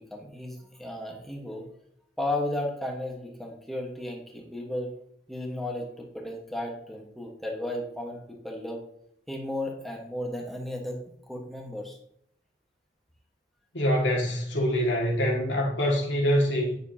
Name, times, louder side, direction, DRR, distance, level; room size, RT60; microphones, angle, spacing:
voice 1, 0.0-1.7 2.2-4.9 5.3-8.8 9.3-11.0 11.3-12.0, left 1 dB, ahead, 1.4 m, -34 dB
voice 2, 13.7-16.8, equal, 90° left, 2.1 m, -25 dB
9.1 x 6.9 x 2.8 m
head